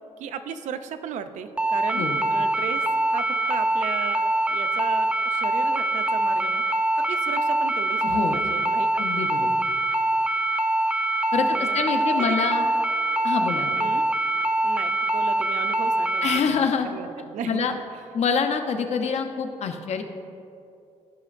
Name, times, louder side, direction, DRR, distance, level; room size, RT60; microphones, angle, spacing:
voice 1, 0.2-4.2 4.5-6.6 7.0-9.0 11.4-12.4 13.8-14.1 14.6-17.8, right 7 dB, 90° right, 10 dB, 0.5 m, -36 dB
sound 1, 1.6-16.4, right 1 dB, 10° right, 0.3 m, -24 dB
voice 2, 8.0-8.4 9.0-9.5 11.3-12.7 13.2-13.8 16.2-16.9 17.5-17.7 18.1-20.0, left 6 dB, 65° left, 6 dB, 0.7 m, -26 dB
14.5 x 5.1 x 2.5 m, 2.6 s
cardioid pair, 105°, 12 cm